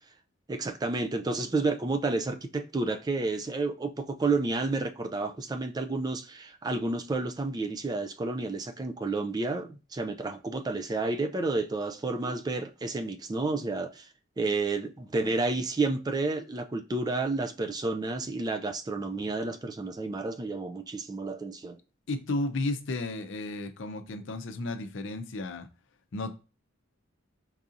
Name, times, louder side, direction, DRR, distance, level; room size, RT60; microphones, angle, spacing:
voice 1, 0.5-14.1 14.4-21.8, right 3 dB, 20° right, 0.3 m, -30 dB
voice 2, 22.1-25.7 26.1-26.3, left 2 dB, 65° left, 0.5 m, -33 dB
4.6 x 2.7 x 2.5 m
head